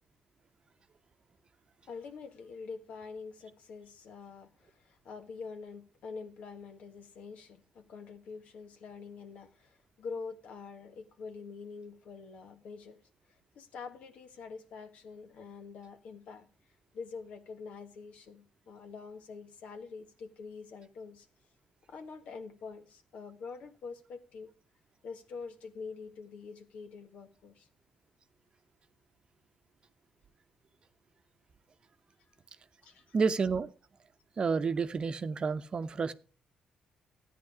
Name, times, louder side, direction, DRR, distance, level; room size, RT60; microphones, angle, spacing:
voice 1, 1.9-13.0 13.3-16.5 16.9-21.3 21.9-24.5 25.0-27.7 32.8-33.2, left 5 dB, 70° left, 1.6 m, -45 dB
voice 2, 33.1-33.7 34.4-36.1, right 5 dB, 45° right, 0.8 m, -30 dB
13.0 x 9.3 x 5.0 m
cardioid pair, 75°, 2 cm